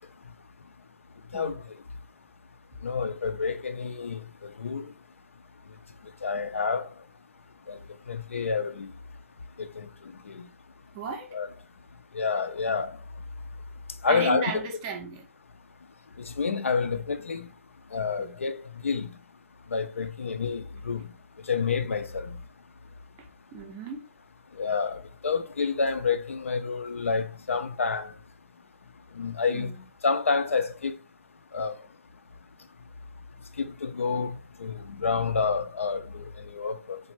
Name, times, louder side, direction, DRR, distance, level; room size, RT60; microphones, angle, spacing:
voice 1, 2.8-4.2 4.6-4.8 6.2-6.8 7.7-7.8 8.1-8.9 9.8-9.9 10.3-10.4 11.3-11.5 12.1-12.9 14.0-14.6 16.4-17.5 17.9-19.1 19.7-21.0 21.5-22.4 24.6-28.1 29.2-29.7 30.0-30.9 31.5-31.7 33.8-37.0, left 5 dB, 55° left, 0.4 m, -28 dB
voice 2, 10.9-11.4 14.1-15.2 18.2-18.3 23.2-23.3 23.5-24.1 29.5-29.8, right 5 dB, 20° right, 0.5 m, -35 dB
3.2 x 2.5 x 3.0 m
figure-of-eight pair, 140°, 8 cm